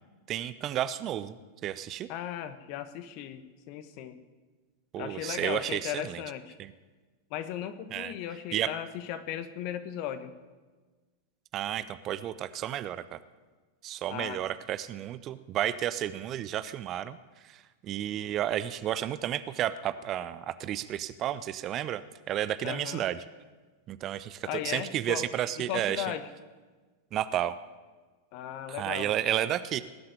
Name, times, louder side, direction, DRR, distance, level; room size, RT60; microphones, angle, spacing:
voice 1, 0.3-2.1 4.9-6.2 6.6-6.7 7.9-8.1 8.5-8.7 11.5-13.2 13.8-17.2 17.4-22.0 22.3-23.2 23.9-26.1 27.1-27.6 28.7-29.8, right 11 dB, 35° right, 14 dB, 0.7 m, -32 dB
voice 2, 2.1-4.2 5.0-6.6 7.3-10.3 14.1-14.4 22.6-23.0 24.5-25.3 25.7-26.3 28.3-29.1, left 10 dB, 45° left, 11 dB, 1.3 m, -36 dB
19.0 x 7.9 x 9.7 m, 1.4 s
figure-of-eight pair, 90°, 0 cm